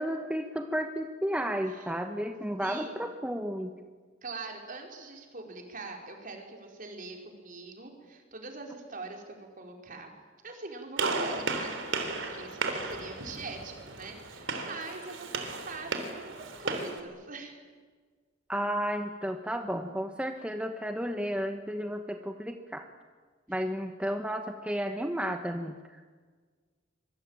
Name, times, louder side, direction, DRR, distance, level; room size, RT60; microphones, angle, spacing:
voice 1, 0.0-3.7 18.5-22.8 23.5-26.0, equal, 5° right, 5 dB, 1.2 m, -33 dB
voice 2, 2.6-3.1 4.2-10.1 10.4-17.6, right 3 dB, 45° right, 2 dB, 4.9 m, -43 dB
Gunshot gunfire, 11.0-17.0, right 3 dB, 85° right, 3.6 m, -34 dB
25.5 x 23.5 x 9.0 m, 1.5 s
head